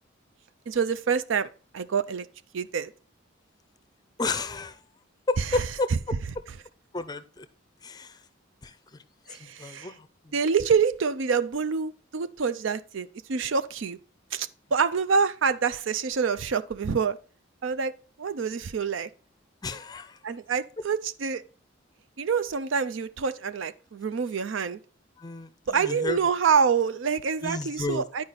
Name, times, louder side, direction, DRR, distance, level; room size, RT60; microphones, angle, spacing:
voice 1, 0.7-1.5 1.7-2.3 2.5-2.9 5.4-5.7 9.3-9.9 10.3-14.0 14.3-17.2 17.6-17.9 18.2-19.1 20.2-21.4 22.2-24.8 25.7-28.2, right 6 dB, 70° right, 0.5 m, -26 dB
voice 2, 4.2-4.8 5.3-5.9 6.9-7.5 7.8-8.2 8.6-8.7 9.6-10.3 19.6-20.2 25.2-26.2 27.4-28.0, left 3 dB, 20° left, 0.5 m, -31 dB
10.5 x 4.8 x 4.1 m
head